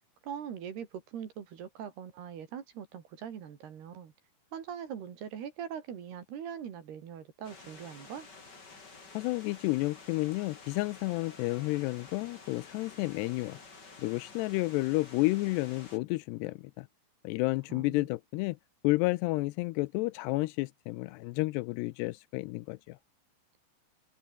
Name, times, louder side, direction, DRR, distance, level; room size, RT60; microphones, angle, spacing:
voice 1, 0.2-4.1 4.5-8.3 17.7-18.1, right 8 dB, 60° right, 4.5 m, -42 dB
sound 1, 7.4-16.0, left 4 dB, 25° left, 3.6 m, -51 dB
voice 2, 9.1-13.6 14.0-16.9 17.2-18.6 18.8-23.0, left 21 dB, 85° left, 2.4 m, -31 dB
open air
omnidirectional pair, 5.4 m